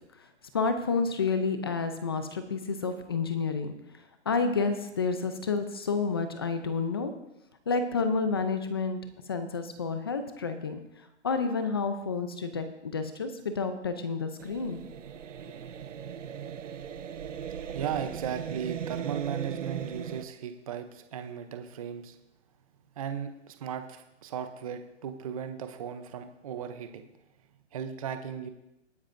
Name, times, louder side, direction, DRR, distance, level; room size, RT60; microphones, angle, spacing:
voice 1, 0.5-3.7 4.3-7.1 7.7-9.0 9.3-10.8 11.2-14.8, left 4 dB, 20° left, 9 dB, 0.5 m, -29 dB
sound 1, 14.4-20.2, right 8 dB, 80° right, 1.0 m, -38 dB
voice 2, 17.7-22.2 23.0-27.1 27.7-28.5, right 8 dB, 30° right, 8 dB, 0.7 m, -36 dB
19.5 x 9.6 x 2.6 m, 0.89 s
hypercardioid pair, 160°, 36 cm